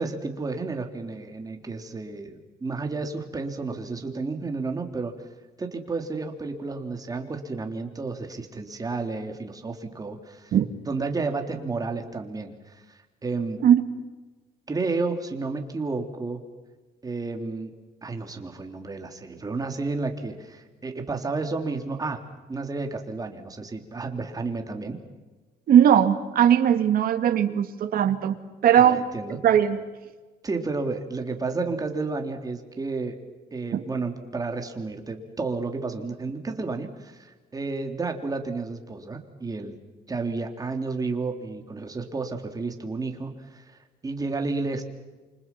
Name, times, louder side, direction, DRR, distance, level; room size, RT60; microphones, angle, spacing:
voice 1, 0.0-5.3 5.6-10.5 10.9-13.6 14.7-16.4 17.0-22.2 22.5-25.0 28.8-29.4 30.4-33.2 33.5-39.8 40.1-43.6 44.0-44.8, right 3 dB, 20° right, 5 dB, 3.3 m, -31 dB
voice 2, 25.7-28.4 28.6-29.0 29.4-29.8 33.7-33.8, right 9 dB, 60° right, 8 dB, 2.3 m, -19 dB
28.5 x 26.0 x 6.0 m, 1.3 s
cardioid pair, 110°, 17 cm